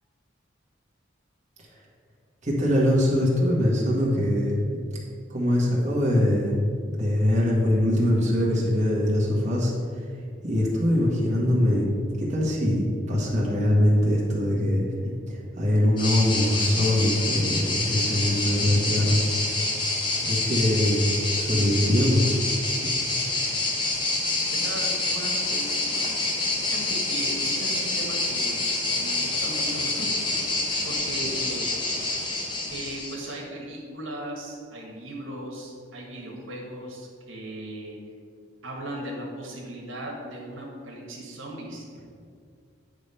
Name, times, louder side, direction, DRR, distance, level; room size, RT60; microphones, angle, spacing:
voice 1, 2.4-4.6 5.3-6.6 6.9-9.7 10.4-19.2 20.2-22.3 22.8-22.9, left 1 dB, 40° right, -5 dB, 1.5 m, -23 dB
sound 1, 16.0-33.3, left 2 dB, 25° left, 1.0 m, -27 dB
voice 2, 24.5-26.1 26.6-28.7 28.9-30.4 30.8-31.7 32.7-38.0 38.6-41.8, right 1 dB, 90° right, -2 dB, 1.5 m, -37 dB
9.1 x 3.4 x 5.5 m, 2.2 s
head